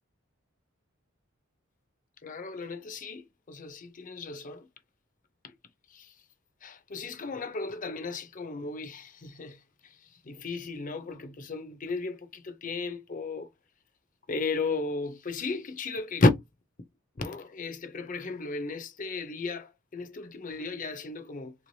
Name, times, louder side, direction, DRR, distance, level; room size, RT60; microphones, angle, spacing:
voice 1, 2.2-4.7 5.4-5.5 5.9-6.2 6.6-13.5 14.3-16.4 17.2-21.5, left 3 dB, 40° left, 0.6 m, -33 dB
3.5 x 3.1 x 2.7 m
head